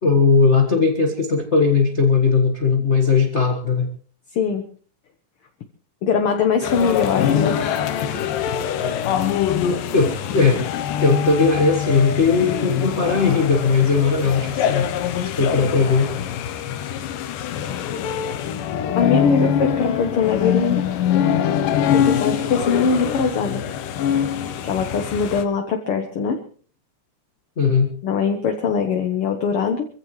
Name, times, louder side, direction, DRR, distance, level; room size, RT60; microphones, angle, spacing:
voice 1, 0.0-3.9 9.9-10.6 11.0-14.9 15.4-16.1 27.6-27.9, left 4 dB, 45° left, 3 dB, 0.9 m, -18 dB
voice 2, 4.3-4.6 6.0-7.8 19.0-20.8 21.9-23.6 24.6-26.4 28.0-29.9, left 5 dB, 60° left, 5 dB, 1.5 m, -21 dB
sound 1, 6.6-25.4, left 9 dB, 80° left, 2.6 m, -23 dB
24.5 x 15.5 x 3.2 m, 0.42 s
omnidirectional pair, 3.8 m